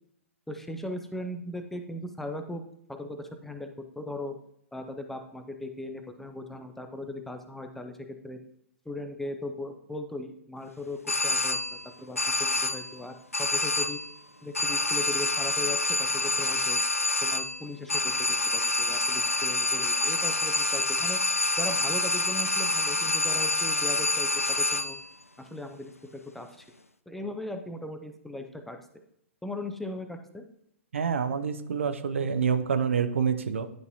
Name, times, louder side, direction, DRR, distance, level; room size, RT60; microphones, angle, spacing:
voice 1, 0.5-2.6 2.9-4.3 4.7-8.0 8.2-8.4 8.9-14.0 14.4-16.8 17.2-21.2 21.6-25.0 25.4-26.6 27.1-28.8 29.4-30.4, left 1 dB, 5° left, 6 dB, 0.5 m, -38 dB
sound 1, 11.1-11.9 12.2-13.0 13.3-14.2 14.5-25.1, left 2 dB, 90° left, 0.4 m, -27 dB
voice 2, 30.9-33.7, right 6 dB, 65° right, 9 dB, 0.6 m, -27 dB
10.5 x 4.0 x 2.8 m, 0.73 s
figure-of-eight pair, 110°, 7 cm